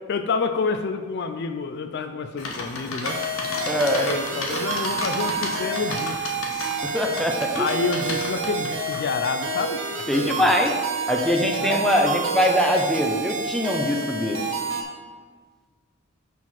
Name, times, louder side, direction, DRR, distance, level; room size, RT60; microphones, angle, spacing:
voice 1, 0.1-3.2 4.0-6.4 7.6-10.6 11.6-11.8, left 4 dB, 55° left, 8 dB, 0.4 m, -28 dB
sound 1, 2.4-9.0, left 2 dB, 85° left, 1.1 m, -33 dB
sound 2, 3.0-14.8, right 3 dB, 65° right, 1.2 m, -29 dB
voice 2, 3.7-4.1 6.8-7.7 10.1-10.7 11.1-14.4, equal, ahead, 2 dB, 0.6 m, -22 dB
5.7 x 4.9 x 5.8 m, 1.5 s
head